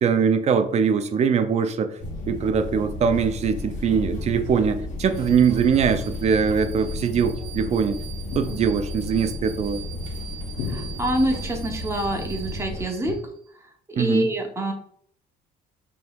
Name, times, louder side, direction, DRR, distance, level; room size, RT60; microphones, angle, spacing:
voice 1, 0.0-1.9 2.3-8.0 8.4-9.8 14.0-14.3, right 6 dB, 40° right, 9 dB, 0.4 m, -22 dB
sound 1, 2.0-12.8, left 2 dB, 45° left, 1.1 m, -33 dB
sound 2, 5.0-13.5, right 12 dB, 85° right, 0.6 m, -43 dB
sound 3, 8.3-9.1 10.6-11.4 13.0-13.2, left 6 dB, 70° left, 0.7 m, -35 dB
voice 2, 10.7-13.3 13.6-14.7, right 1 dB, 15° right, 2 dB, 0.8 m, -26 dB
5.0 x 3.0 x 2.3 m, 0.63 s
cardioid pair, 110°, 17 cm